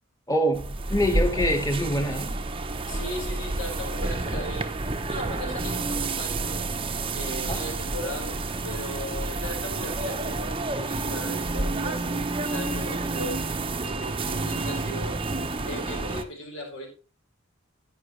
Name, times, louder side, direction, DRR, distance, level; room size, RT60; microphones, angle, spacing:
voice 1, 0.3-2.4 7.4-7.6, equal, 15° left, 1.9 m, -25 dB
sound 1, 0.5-16.2, right 2 dB, 25° right, 0.8 m, -29 dB
voice 2, 2.9-4.8 5.1-6.7 7.1-8.3 8.6-13.4 13.8-15.2 15.6-16.9, left 1 dB, 75° left, 5.0 m, -37 dB
10.5 x 10.0 x 3.2 m
head